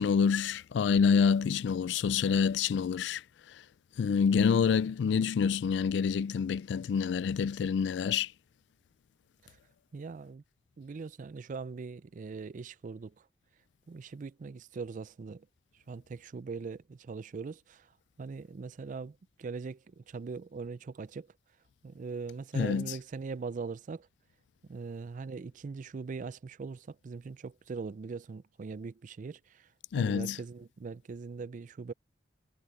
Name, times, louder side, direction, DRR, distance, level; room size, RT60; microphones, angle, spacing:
voice 1, 0.0-3.2 4.0-8.3 22.5-22.9 29.9-30.4, left 6 dB, 70° left, 0.3 m, -27 dB
voice 2, 9.9-10.4 10.8-13.1 13.9-15.5 15.9-17.9 18.2-21.3 21.8-24.1 24.7-29.7 30.0-31.9, right 4 dB, 45° right, 0.4 m, -41 dB
head